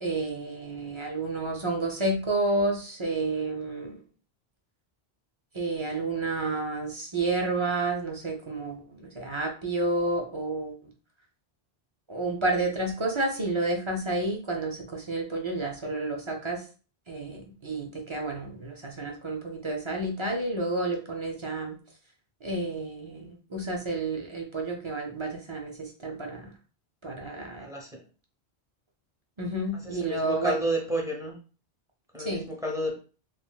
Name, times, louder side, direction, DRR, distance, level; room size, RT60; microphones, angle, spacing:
voice 1, 0.0-4.0 5.5-10.8 12.1-16.6 17.1-21.8 22.4-26.5 27.0-27.7 29.4-30.6 32.2-32.4, right 2 dB, 40° right, 1 dB, 0.4 m, -30 dB
voice 2, 27.5-28.0 29.8-31.3 32.1-33.0, right 1 dB, 5° right, -1 dB, 0.6 m, -31 dB
3.5 x 2.3 x 2.3 m, 0.37 s
omnidirectional pair, 1.0 m